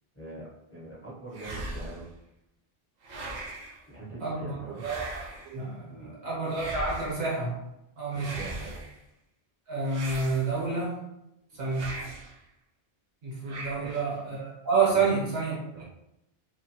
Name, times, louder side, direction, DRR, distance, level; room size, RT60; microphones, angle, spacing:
voice 1, 0.1-2.1 3.9-4.8 5.9-6.2 8.1-8.8 13.7-14.0 14.9-15.1 15.7-15.8, right 2 dB, 20° left, -6 dB, 0.4 m, -43 dB
sound 1, 1.3-2.1 3.0-3.8 4.8-5.6 6.5-7.3 8.1-9.0 9.9-10.8 11.7-12.4 13.5-14.2, right 2 dB, 50° right, 0.6 m, -39 dB
voice 2, 4.2-4.6 4.8-7.6 8.0-8.3 9.7-11.0 11.5-12.0 13.2-15.8, right 4 dB, 70° right, -5 dB, 1.2 m, -29 dB
2.7 x 2.2 x 2.8 m, 0.86 s
omnidirectional pair, 1.1 m